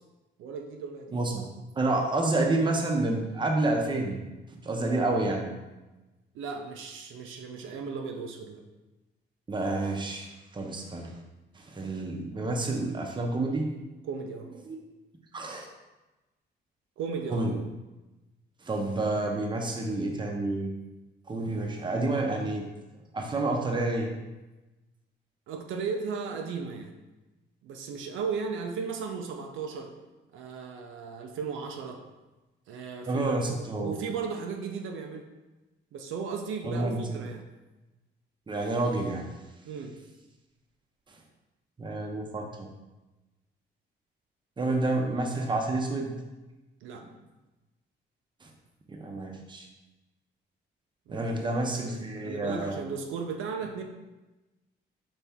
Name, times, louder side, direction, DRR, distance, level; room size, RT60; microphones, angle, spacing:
voice 1, 0.4-1.2 6.3-8.6 14.0-14.5 17.0-17.5 25.5-26.9 27.6-29.9 30.3-32.0 32.7-35.3 35.9-37.5 39.7-40.0 46.8-47.1 51.1-51.3 51.8-52.0 52.2-53.8, right 5 dB, 85° right, 2 dB, 0.6 m, -36 dB
voice 2, 1.1-1.4 1.8-4.2 4.6-5.5 9.5-11.1 11.6-13.7 14.7-14.8 15.3-15.7 17.3-17.6 18.6-20.7 21.3-22.7 23.1-24.1 33.1-33.9 36.6-37.2 38.5-39.3 41.8-42.7 44.6-46.1 47.0-47.1 48.9-49.7 51.1-52.8, right 2 dB, 25° right, 1 dB, 0.8 m, -29 dB
4.2 x 3.4 x 3.5 m, 1.1 s
cardioid pair, 90°, 20 cm